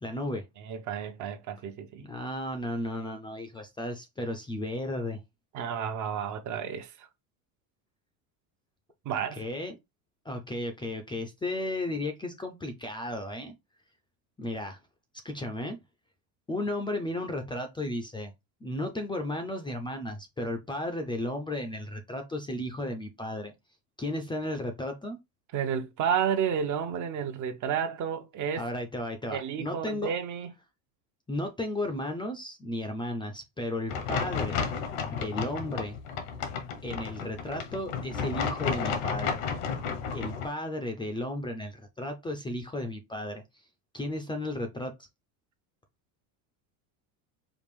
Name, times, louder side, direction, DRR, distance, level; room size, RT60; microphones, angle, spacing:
voice 1, 0.0-0.4 2.0-5.2 9.1-9.7 10.2-13.5 14.4-14.8 15.2-15.8 16.5-18.3 18.6-23.5 24.0-25.2 28.6-30.1 31.3-34.6 35.1-36.0 36.8-39.4 40.1-43.4 43.9-44.9, left 1 dB, 10° left, 0.5 m, -34 dB
voice 2, 0.6-2.1 5.5-7.1 9.0-9.4 25.5-28.7 29.3-30.5, right 7 dB, 45° right, 0.8 m, -31 dB
sound 1, 33.9-40.5, left 6 dB, 80° left, 1.2 m, -32 dB
5.0 x 2.4 x 3.5 m
supercardioid pair, 130°, 42 cm